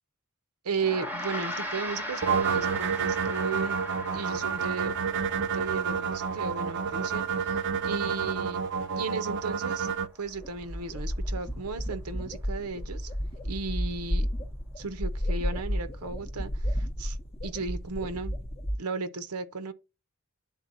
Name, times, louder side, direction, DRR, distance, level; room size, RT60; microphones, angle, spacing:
voice 1, 0.6-3.8 4.1-4.9 5.5-7.6 7.8-8.6 9.0-9.9 10.2-13.1 13.4-14.3 14.8-17.2 17.4-18.3 18.8-19.7, right 4 dB, 90° right, 0.7 m, -35 dB
Gong, 0.8-10.4, left 1 dB, 10° right, 0.7 m, -40 dB
sound 1, 2.2-10.1, right 6 dB, 55° right, 0.5 m, -29 dB
sound 2, 9.9-10.0 10.3-18.8, equal, 25° left, 0.6 m, -32 dB
11.0 x 3.8 x 2.6 m
head